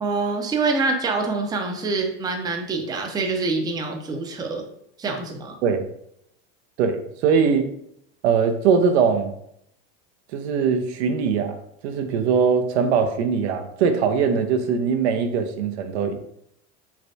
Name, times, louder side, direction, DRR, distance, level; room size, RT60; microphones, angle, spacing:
voice 1, 0.0-4.6 5.0-5.6, right 3 dB, 10° right, 3 dB, 0.4 m, -25 dB
voice 2, 6.8-7.7 8.2-9.3 10.3-16.1, right 6 dB, 85° right, 7 dB, 0.6 m, -21 dB
3.3 x 3.2 x 2.6 m, 0.73 s
supercardioid pair, 120°, 32 cm